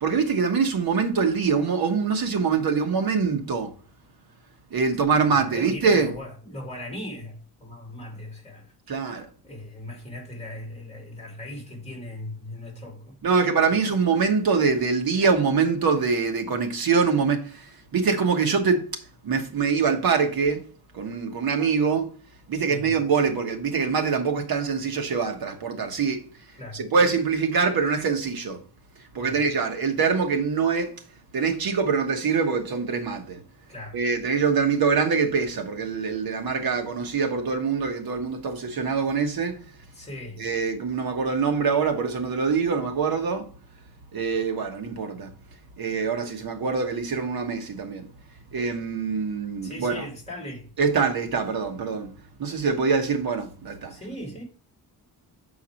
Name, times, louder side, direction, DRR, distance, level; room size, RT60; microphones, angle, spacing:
voice 1, 0.0-3.7 4.7-6.1 8.9-9.3 13.2-18.9 19.2-20.6 20.9-22.1 22.5-26.2 26.7-28.6 29.1-30.9 31.3-33.4 33.9-39.6 40.4-43.5 44.1-45.3 45.8-48.1 48.5-50.0 50.8-52.1 52.4-53.9, right 5 dB, 60° right, 1.3 m, -24 dB
voice 2, 5.1-8.7 9.4-13.2 13.7-13.8 22.7-22.9 26.6-26.8 29.2-29.4 33.7-34.0 39.9-40.4 49.6-50.7 53.9-54.4, left 1 dB, 15° left, 2.3 m, -38 dB
7.0 x 4.7 x 4.3 m
wide cardioid pair, 175°, 40 cm